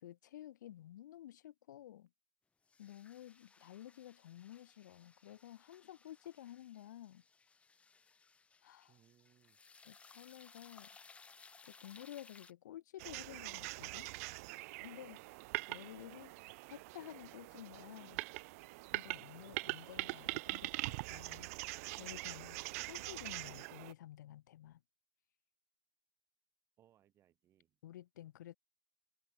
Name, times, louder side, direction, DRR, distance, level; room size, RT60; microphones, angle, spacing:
voice 1, 0.0-2.1 2.8-7.2 8.6-9.0 9.8-10.9 11.6-14.1 14.8-15.2 15.7-16.3 16.7-18.2 18.9-22.6 22.9-24.8 27.8-28.6, left 12 dB, 75° left, 0.9 m, -52 dB
sound 1, 2.7-12.5, left 4 dB, 10° left, 3.8 m, -62 dB
voice 2, 8.9-9.6 19.2-19.6 26.8-27.8, right 11 dB, 25° right, 3.6 m, -70 dB
sound 2, 13.0-23.9, right 23 dB, 55° right, 1.0 m, -43 dB
hypercardioid pair, 135°, 10 cm